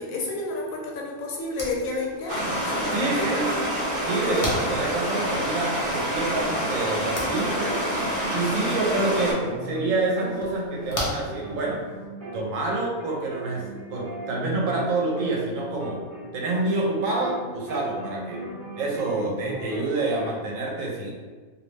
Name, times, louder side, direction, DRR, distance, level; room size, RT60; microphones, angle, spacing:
voice 1, 0.0-3.4 4.3-4.4, left 2 dB, 90° left, -1 dB, 1.0 m, -31 dB
sound 1, 1.4-12.0, left 1 dB, 55° left, 0.4 m, -39 dB
Stream, 2.3-9.3, equal, 55° right, 0.7 m, -27 dB
voice 2, 2.9-3.5 4.0-7.7 8.3-11.8 12.3-16.0 16.3-18.4 18.8-21.1, right 2 dB, 80° right, -2 dB, 1.0 m, -27 dB
sound 2, 6.5-7.4 7.7-12.4 12.7-17.4 17.7-20.3, right 1 dB, 15° right, 0.6 m, -38 dB
2.5 x 2.0 x 3.1 m, 1.4 s
omnidirectional pair, 1.4 m